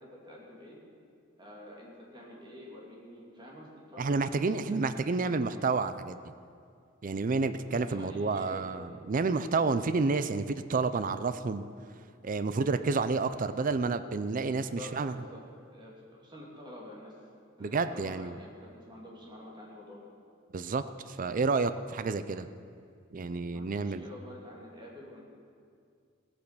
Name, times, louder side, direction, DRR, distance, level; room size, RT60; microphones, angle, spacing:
voice 1, 0.1-0.8 1.4-5.4 7.7-8.8 14.4-15.4 15.7-15.9 16.2-17.1 17.6-20.1 23.5-25.2, left 1 dB, 25° right, -3 dB, 2.8 m, -48 dB
voice 2, 4.0-6.2 7.0-11.6 12.2-15.1 17.6-18.4 20.5-22.5 23.1-24.1, right 4 dB, 45° right, 12 dB, 0.5 m, -30 dB
17.0 x 8.6 x 6.1 m, 2.3 s
head